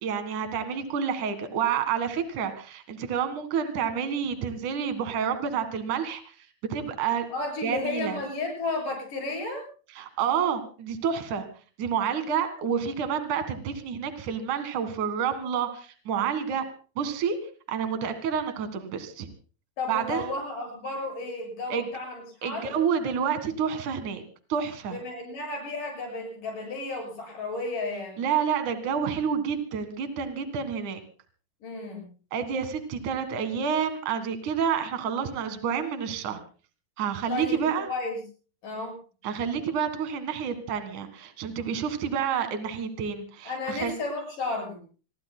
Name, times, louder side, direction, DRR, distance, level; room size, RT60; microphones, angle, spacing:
voice 1, 0.0-6.2 6.7-7.3 7.6-8.2 10.0-11.5 11.8-16.6 17.0-17.4 17.7-19.3 19.9-20.3 21.7-21.8 22.4-24.2 24.5-25.0 28.2-31.0 32.3-36.4 37.0-37.9 39.2-43.9, right 7 dB, 60° right, 9 dB, 2.9 m, -29 dB
voice 2, 7.3-9.6 19.8-22.7 24.9-28.2 31.6-32.1 37.3-38.2 38.6-39.0 43.4-44.8, left 2 dB, 55° left, 1 dB, 8.6 m, -33 dB
27.5 x 21.5 x 2.2 m, 0.39 s
omnidirectional pair, 4.5 m